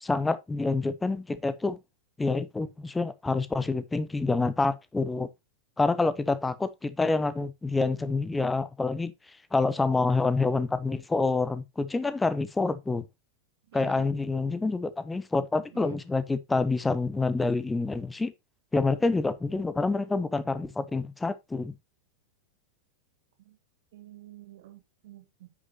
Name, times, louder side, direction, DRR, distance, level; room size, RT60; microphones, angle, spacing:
voice 1, 0.0-1.8 2.2-5.3 5.8-9.1 9.5-13.0 13.7-18.3 18.7-21.7, left 3 dB, 10° left, 0.8 m, -27 dB
voice 2, 7.8-8.1 13.7-14.1 14.4-14.7 15.7-16.0 23.4-23.6 23.9-25.5, right 14 dB, 55° right, 1.6 m, -50 dB
9.4 x 6.3 x 2.9 m
figure-of-eight pair, 90°, 0 cm